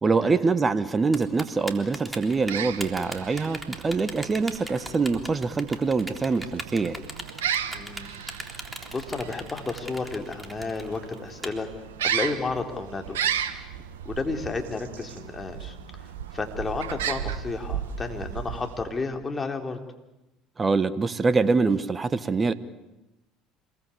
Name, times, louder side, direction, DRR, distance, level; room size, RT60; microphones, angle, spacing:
voice 1, 0.0-7.0 20.6-22.5, right 4 dB, 25° right, 15 dB, 1.2 m, -24 dB
Typing, 1.1-11.5, right 1 dB, 10° right, 3.6 m, -38 dB
sound 1, 2.3-19.0, right 9 dB, 80° right, 1.4 m, -35 dB
voice 2, 7.7-8.6 8.9-11.7 12.0-13.2 13.5-13.7 14.0-15.8 16.3-19.8, left 3 dB, 25° left, 4 dB, 3.8 m, -32 dB
27.0 x 21.5 x 8.7 m, 0.96 s
hypercardioid pair, 65°, 0 cm